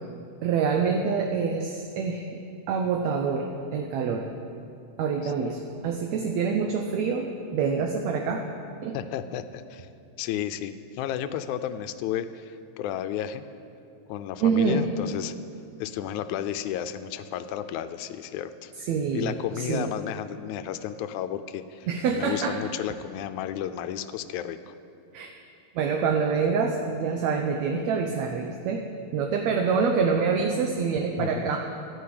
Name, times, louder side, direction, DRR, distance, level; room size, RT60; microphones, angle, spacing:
voice 1, 0.4-2.3 2.7-4.3 5.0-8.5 8.8-9.0 14.4-14.9 18.8-19.9 21.9-22.6 25.1-25.3 25.8-28.8 29.1-31.6, right 5 dB, 75° right, 3 dB, 2.0 m, -26 dB
voice 2, 8.9-9.9 10.2-13.5 14.1-15.4 15.8-18.7 19.1-24.8 31.2-31.5, left 10 dB, 90° left, 11 dB, 2.1 m, -32 dB
12.5 x 11.0 x 8.5 m, 2.5 s
omnidirectional pair, 3.3 m